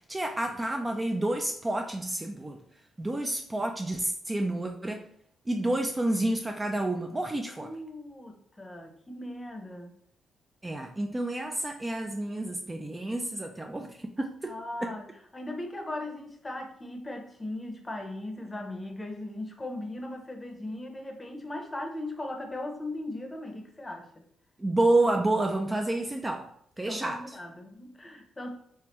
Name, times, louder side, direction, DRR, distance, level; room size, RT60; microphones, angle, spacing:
voice 1, 0.1-2.6 3.0-5.1 5.5-7.7 10.6-13.9 14.2-14.5 14.8-14.9 24.6-27.4, right 2 dB, 15° right, 3 dB, 0.3 m, -29 dB
voice 2, 7.5-9.9 14.4-24.2 26.8-28.5, left 1 dB, 20° left, 4 dB, 0.7 m, -38 dB
3.3 x 3.3 x 2.9 m, 0.68 s
cardioid pair, 115°, 0 cm